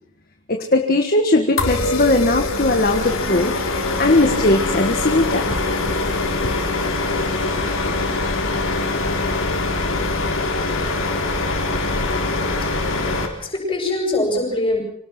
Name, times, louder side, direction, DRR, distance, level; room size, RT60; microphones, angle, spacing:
voice 1, 0.5-3.5 4.0-5.4, left 2 dB, 45° left, 4 dB, 1.6 m, -18 dB
sound 1, 1.6-13.3, left 2 dB, 85° left, 3.9 m, -23 dB
voice 2, 12.6-14.8, left 1 dB, 25° left, 0 dB, 7.7 m, -24 dB
26.0 x 18.0 x 6.1 m, 0.72 s
head